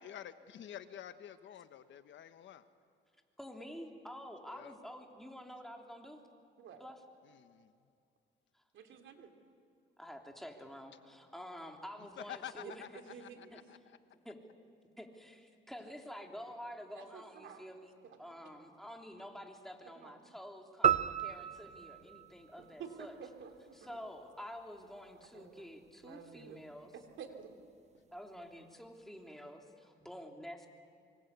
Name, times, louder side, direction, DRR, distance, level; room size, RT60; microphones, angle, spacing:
voice 1, 0.0-2.6 4.5-4.8 7.2-7.7 12.2-14.0, left 10 dB, 70° left, 10 dB, 1.2 m, -49 dB
voice 2, 3.4-6.2 6.8-7.0 8.5-8.6 10.0-12.8 13.5-13.6 14.2-14.4 15.0-23.2 23.7-26.9 28.1-30.7, equal, ahead, 2 dB, 3.2 m, -49 dB
voice 3, 8.7-9.3 12.6-13.5 16.9-17.6 18.1-18.2 19.9-20.2 22.8-24.0 25.3-25.6 26.0-26.6 26.9-27.5, right 6 dB, 75° right, 5 dB, 3.0 m, -50 dB
sound 1, 20.8-23.3, right 9 dB, 35° right, 0.8 m, -33 dB
25.5 x 24.5 x 8.3 m, 2.4 s
cardioid pair, 90°, 20 cm